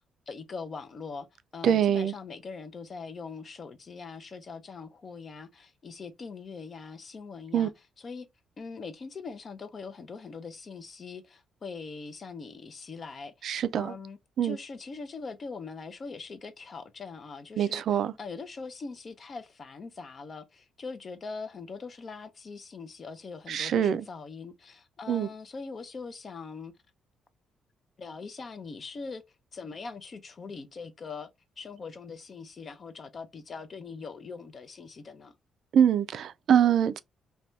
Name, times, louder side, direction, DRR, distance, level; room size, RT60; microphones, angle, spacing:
voice 1, 0.3-1.3 1.5-7.7 8.0-8.3 8.6-26.7 28.0-29.2 29.5-31.3 31.6-35.3, left 4 dB, 40° left, 0.5 m, -42 dB
voice 2, 1.6-2.1 7.5-7.7 13.4-13.9 14.4-14.6 17.6-18.1 23.5-24.0 25.1-25.3 35.7-37.0, right 9 dB, 65° right, 0.3 m, -24 dB
2.7 x 2.2 x 3.1 m
cardioid pair, 90°, 0 cm